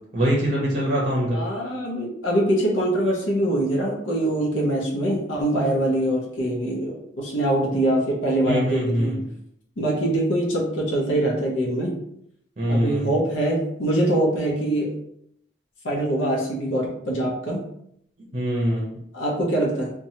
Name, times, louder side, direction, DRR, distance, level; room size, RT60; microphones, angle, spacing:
voice 1, 0.1-1.4 8.4-9.2 12.6-13.2 18.3-19.0, equal, 40° right, -4 dB, 0.6 m, -23 dB
voice 2, 1.3-9.2 9.8-11.9 12.7-15.0 15.8-17.6 19.1-19.9, right 1 dB, 80° left, -3 dB, 0.7 m, -23 dB
2.8 x 2.2 x 2.7 m, 0.72 s
head